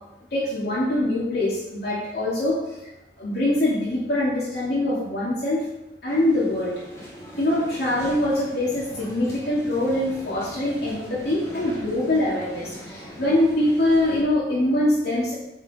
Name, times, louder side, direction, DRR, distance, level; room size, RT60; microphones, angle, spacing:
voice 1, 0.3-2.8 3.2-5.7 6.0-6.7 7.4-15.3, left 1 dB, 65° left, -8 dB, 2.5 m, -23 dB
sound 1, 6.1-14.2, equal, 15° left, 2.1 m, -41 dB
8.5 x 5.4 x 5.0 m, 0.94 s
head